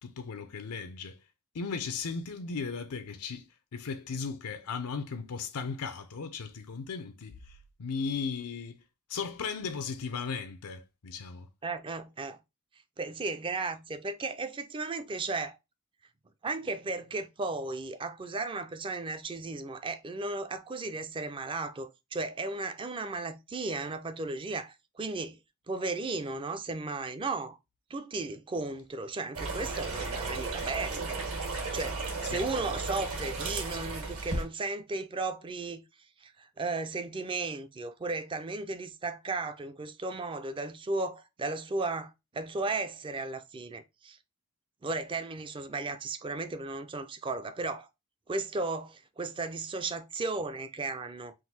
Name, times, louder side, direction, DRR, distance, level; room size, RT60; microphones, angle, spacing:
voice 1, 0.0-1.2 1.5-3.5 3.7-8.8 9.1-11.5 32.2-32.5, left 5 dB, 90° left, 0.6 m, -36 dB
voice 2, 11.6-12.4 13.0-15.6 16.4-25.4 25.7-27.6 27.9-31.2 31.5-35.8 36.2-44.2 44.8-47.9 48.3-51.3, right 3 dB, 20° right, 0.4 m, -35 dB
sound 1, 29.3-34.4, right 3 dB, 70° right, 1.6 m, -34 dB
3.8 x 2.6 x 4.1 m
head